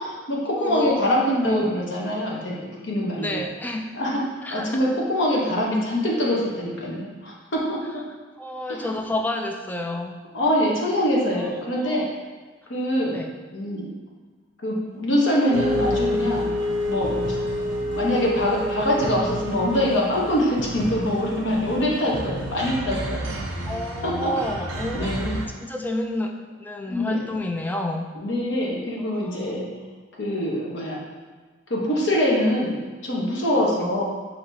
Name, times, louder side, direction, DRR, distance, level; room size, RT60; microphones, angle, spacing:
voice 1, 0.0-3.4 3.9-4.2 4.5-7.8 8.7-8.9 10.3-12.0 12.7-13.2 13.5-13.9 14.6-17.4 17.9-23.3 24.0-24.3 24.9-25.4 26.9-27.2 28.2-29.7 30.2-31.0 31.7-34.0, left 1 dB, 70° left, -3 dB, 1.0 m, -24 dB
voice 2, 0.5-1.0 1.4-1.8 3.2-3.9 4.4-4.8 8.4-10.2 11.2-12.0 13.1-13.3 23.7-26.3 26.6-28.1 29.0-29.5 33.8-33.9, left 1 dB, 10° left, 3 dB, 0.3 m, -30 dB
Wind instrument woodwind instrument, 15.5-19.9, left 1 dB, 40° left, 0.7 m, -27 dB
sound 1, 15.5-25.5, right 2 dB, 75° right, 0.7 m, -33 dB
6.4 x 2.9 x 2.7 m, 1.4 s
head